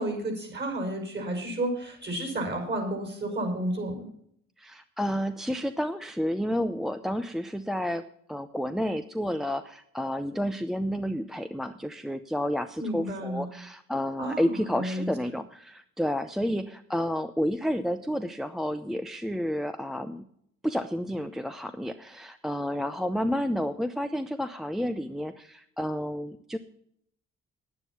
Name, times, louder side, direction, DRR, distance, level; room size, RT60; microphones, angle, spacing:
voice 1, 0.0-4.1 12.8-13.5 14.2-15.1, right 1 dB, 35° right, 4 dB, 5.3 m, -31 dB
voice 2, 4.6-20.2 20.6-26.6, equal, ahead, 8 dB, 0.6 m, -30 dB
9.9 x 9.7 x 7.1 m, 0.68 s
cardioid pair, 90°, 30 cm